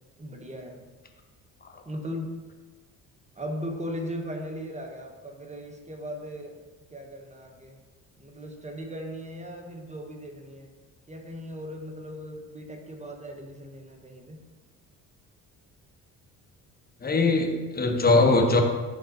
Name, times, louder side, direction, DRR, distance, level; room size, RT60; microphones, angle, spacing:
voice 1, 0.2-0.8 1.8-2.4 3.4-6.6 6.9-7.8 8.2-10.7 11.1-14.4, equal, 15° right, 3 dB, 1.2 m, -38 dB
voice 2, 17.0-18.6, left 3 dB, 25° left, 3 dB, 1.1 m, -21 dB
11.0 x 3.9 x 2.7 m, 1.3 s
hypercardioid pair, 60°, 39 cm